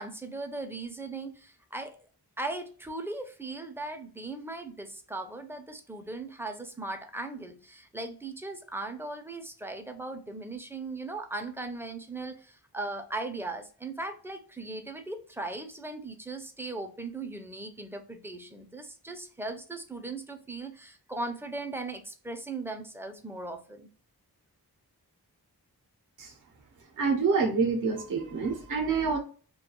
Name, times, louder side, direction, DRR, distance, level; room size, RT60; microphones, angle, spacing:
voice 1, 0.0-2.0 2.4-23.9, right 2 dB, 5° right, 0.4 m, -38 dB
voice 2, 27.0-29.2, right 4 dB, 55° right, 0.6 m, -27 dB
2.2 x 2.2 x 2.8 m
wide cardioid pair, 50°, 39 cm